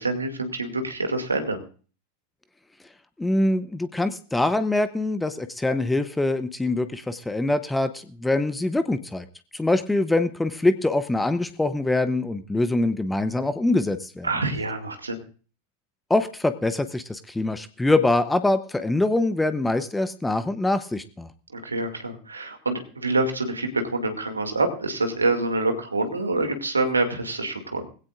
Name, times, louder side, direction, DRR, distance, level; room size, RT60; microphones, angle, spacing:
voice 1, 0.0-1.6 14.2-15.2 21.5-27.9, right 2 dB, 80° right, 6 dB, 2.3 m, -26 dB
voice 2, 3.2-9.3 9.5-14.3 16.1-21.3, left 2 dB, 5° left, 12 dB, 0.8 m, -24 dB
20.0 x 16.5 x 2.5 m, 0.39 s
figure-of-eight pair, 90°, 0 cm